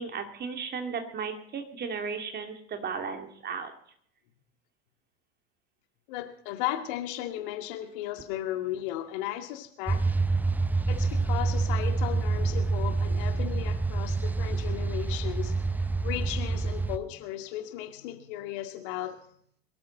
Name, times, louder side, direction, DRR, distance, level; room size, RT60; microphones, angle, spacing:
voice 1, 0.0-3.7, right 5 dB, 30° right, 5 dB, 2.6 m, -35 dB
voice 2, 6.1-10.0 10.9-19.1, left 13 dB, 55° left, 6 dB, 2.1 m, -35 dB
sound 1, 9.9-17.0, right 3 dB, 5° right, 0.7 m, -27 dB
22.5 x 12.5 x 4.1 m, 0.64 s
figure-of-eight pair, 75°, 32 cm